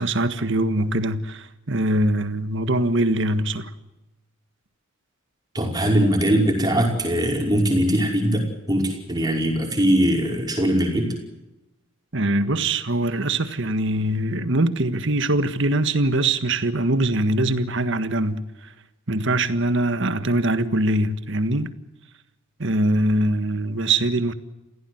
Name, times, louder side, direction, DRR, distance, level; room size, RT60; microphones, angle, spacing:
voice 1, 0.0-3.7 12.1-18.4 19.1-21.7 22.6-24.3, right 1 dB, 60° right, 1.6 m, -22 dB
voice 2, 5.5-11.1, equal, 20° right, 5.4 m, -21 dB
28.0 x 16.5 x 8.0 m
head